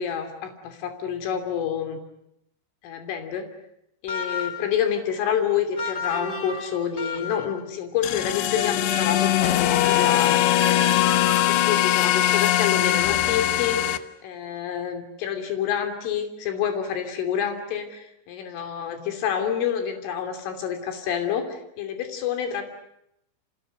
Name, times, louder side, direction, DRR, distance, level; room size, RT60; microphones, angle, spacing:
voice 1, 0.0-2.0 2.8-3.5 4.0-11.0 11.5-22.6, left 8 dB, 90° left, 6 dB, 5.5 m, -28 dB
sound 1, 4.1-4.8 5.8-7.6 8.5-11.7, left 4 dB, 15° left, 2.5 m, -33 dB
sound 2, 8.0-14.0, left 13 dB, 70° left, 3.0 m, -21 dB
30.0 x 27.5 x 6.5 m, 0.79 s
omnidirectional pair, 5.5 m